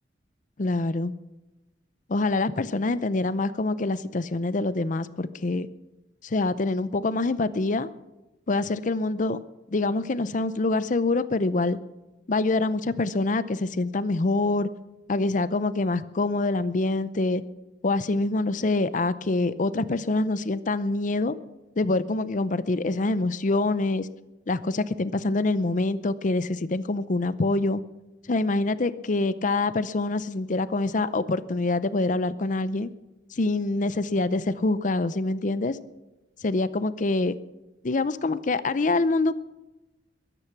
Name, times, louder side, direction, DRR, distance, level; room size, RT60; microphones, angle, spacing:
voice 1, 0.6-1.1 2.1-5.7 6.2-7.9 8.5-9.4 9.7-11.8 12.3-14.7 15.1-17.4 17.8-21.3 21.8-24.1 24.5-27.8 28.3-32.9 33.3-35.8 36.4-37.3 37.8-39.3, left 2 dB, 45° left, 15 dB, 0.6 m, -25 dB
21.5 x 10.0 x 5.9 m, 1.0 s
head